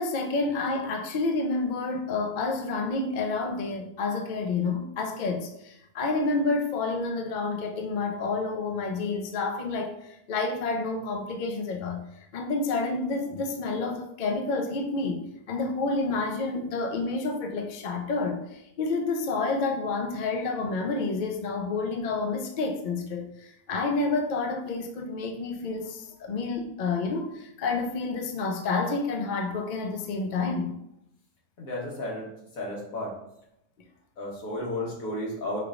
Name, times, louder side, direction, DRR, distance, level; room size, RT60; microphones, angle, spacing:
voice 1, 0.0-12.0 12.3-30.8, left 3 dB, 60° left, 0.5 m, -29 dB
voice 2, 31.6-32.3 32.5-33.1 34.2-35.6, left 1 dB, 85° left, 1.6 m, -33 dB
4.9 x 3.3 x 2.4 m
omnidirectional pair, 1.4 m